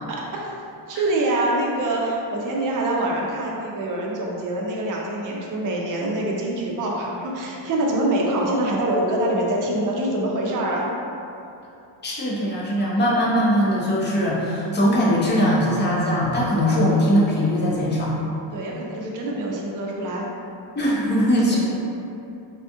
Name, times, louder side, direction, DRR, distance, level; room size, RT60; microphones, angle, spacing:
voice 1, 0.1-0.4 0.9-10.9 18.5-20.3 21.5-21.6, right 1 dB, 40° right, -2 dB, 0.5 m, -25 dB
voice 2, 12.0-18.1 20.8-21.6, equal, 25° left, -5 dB, 0.5 m, -20 dB
3.5 x 2.3 x 2.7 m, 2.8 s
cardioid pair, 140°, 48 cm